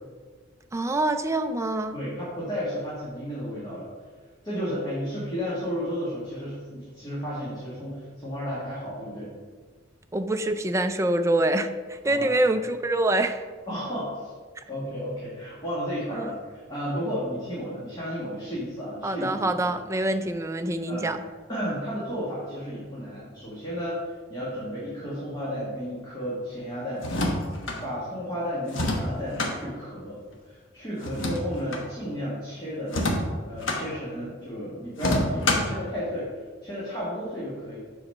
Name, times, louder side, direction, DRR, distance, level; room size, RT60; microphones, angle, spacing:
voice 1, 0.7-1.9 10.1-13.4 16.1-16.3 19.0-21.2, right 1 dB, 15° right, 7 dB, 0.3 m, -25 dB
voice 2, 1.9-3.9 4.4-9.3 12.0-12.3 13.7-14.3 14.7-19.8 20.9-21.1 21.5-27.0 27.8-30.2 30.4-33.0 33.4-37.8, equal, 20° left, -9 dB, 1.7 m, -33 dB
sound 1, 27.0-27.8 28.7-29.5 31.0-31.9 32.9-33.8 35.0-35.8, left 1 dB, 85° left, 1.1 m, -27 dB
7.1 x 4.0 x 5.4 m, 1.5 s
head